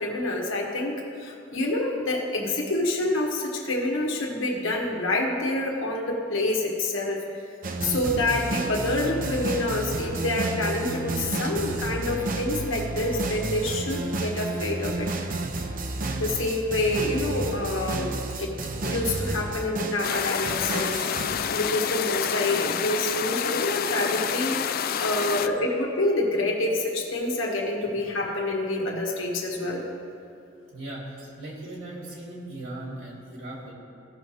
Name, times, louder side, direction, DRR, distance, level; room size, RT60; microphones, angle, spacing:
voice 1, 0.0-7.2 7.8-15.1 16.1-18.1 18.4-21.0 21.5-29.8, left 2 dB, 80° left, -1 dB, 1.6 m, -27 dB
sound 1, 7.6-21.6, right 2 dB, 45° right, 0.7 m, -31 dB
sound 2, 20.0-25.5, left 8 dB, 50° left, 0.4 m, -28 dB
voice 2, 30.7-33.7, right 1 dB, 75° right, -4 dB, 2.3 m, -38 dB
16.0 x 6.2 x 3.4 m, 2.6 s
head